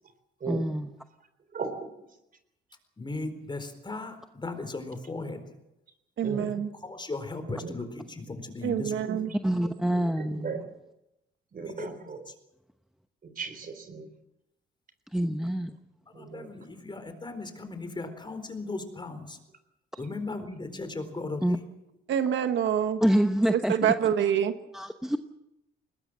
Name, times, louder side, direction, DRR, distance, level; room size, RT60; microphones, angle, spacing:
voice 1, 0.5-0.9 9.4-10.6 15.1-15.8 21.4-21.6 23.0-23.9 24.7-25.2, equal, ahead, 8 dB, 1.0 m, -26 dB
voice 2, 1.5-1.9 6.2-6.5 7.5-7.8 9.1-10.6 11.5-12.3 13.2-14.1 16.1-16.5, right 5 dB, 45° right, 9 dB, 3.9 m, -37 dB
voice 3, 3.0-5.4 6.8-9.1 11.6-12.0 12.3-12.4 16.1-19.4 20.0-21.6, left 3 dB, 25° left, 8 dB, 4.2 m, -37 dB
voice 4, 6.2-6.7 8.6-9.3 22.1-23.0 23.5-24.5, right 9 dB, 70° right, 9 dB, 1.3 m, -26 dB
21.0 x 19.5 x 7.5 m, 0.90 s
cardioid pair, 90°, 20 cm